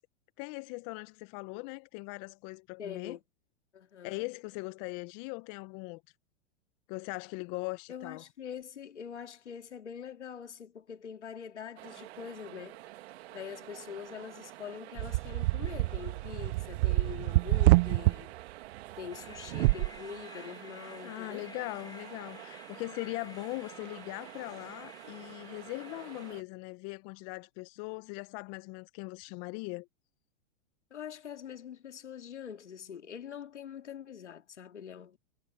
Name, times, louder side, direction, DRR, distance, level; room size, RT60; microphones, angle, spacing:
voice 1, 0.4-3.2 4.0-6.0 6.9-8.2 21.0-29.9, left 27 dB, 45° left, 1.0 m, -40 dB
voice 2, 2.8-3.2 3.7-4.2 7.9-12.8 13.3-18.3 19.0-21.5 30.9-35.2, left 8 dB, 90° left, 2.5 m, -44 dB
sound 1, 11.8-26.4, right 17 dB, 65° right, 2.3 m, -49 dB
sound 2, 15.0-18.1 19.5-19.9, right 22 dB, 50° right, 0.6 m, -26 dB
sound 3, 19.1-26.3, left 4 dB, 10° left, 4.2 m, -53 dB
hypercardioid pair, 115°, 34 cm